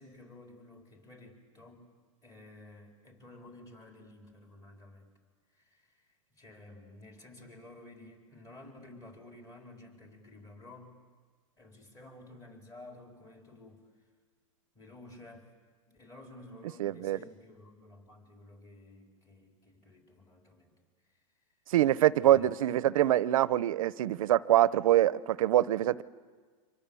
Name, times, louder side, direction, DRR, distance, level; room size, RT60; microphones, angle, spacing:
voice 1, 0.0-1.8 2.2-5.1 5.5-10.9 11.6-13.8 14.7-15.5 15.9-20.7 22.2-22.7, left 2 dB, 20° left, 2 dB, 4.3 m, -52 dB
voice 2, 16.8-17.2 21.7-26.0, right 13 dB, 80° right, 18 dB, 0.7 m, -25 dB
28.5 x 25.5 x 7.0 m, 1.5 s
supercardioid pair, 140°, 17 cm